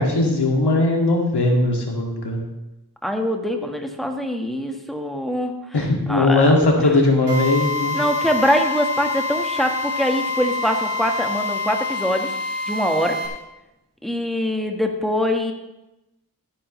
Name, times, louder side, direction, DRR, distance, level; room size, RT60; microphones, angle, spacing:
voice 1, 0.0-2.4 5.7-8.0, left 2 dB, 80° left, 0 dB, 2.4 m, -19 dB
voice 2, 3.0-5.6 6.1-6.5 6.8-6.9 7.9-12.3 12.7-13.2 14.0-15.5, equal, ahead, 4 dB, 1.5 m, -23 dB
Drill, 7.3-13.3, left 3 dB, 75° right, 2.5 m, -26 dB
13.5 x 10.0 x 3.2 m, 0.93 s
wide cardioid pair, 65°, 40 cm